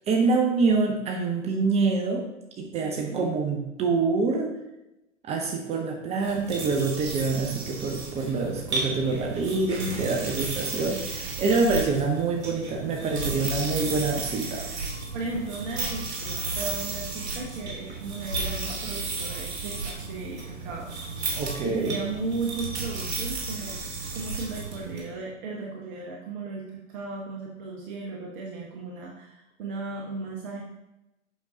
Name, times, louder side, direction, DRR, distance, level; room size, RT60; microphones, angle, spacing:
voice 1, 0.1-2.2 2.6-4.5 5.2-14.6 21.4-22.0, right 4 dB, 15° right, 2 dB, 0.6 m, -26 dB
voice 2, 2.8-3.3 15.1-20.9 21.4-30.6, right 3 dB, 45° right, -2 dB, 1.2 m, -36 dB
sound 1, 6.2-25.0, right 3 dB, 60° right, 2.3 m, -33 dB
8.0 x 6.1 x 2.7 m, 0.92 s
figure-of-eight pair, 105°, 37 cm